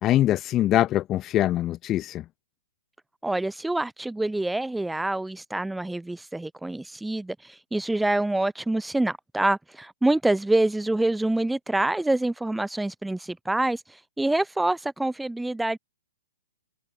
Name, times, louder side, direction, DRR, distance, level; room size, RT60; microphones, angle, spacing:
voice 1, 0.0-2.2, left 13 dB, 20° left, 3.1 m, -23 dB
voice 2, 3.2-13.8 14.2-15.8, right 2 dB, 5° right, 3.4 m, -26 dB
open air
hypercardioid pair, 165°, 0 cm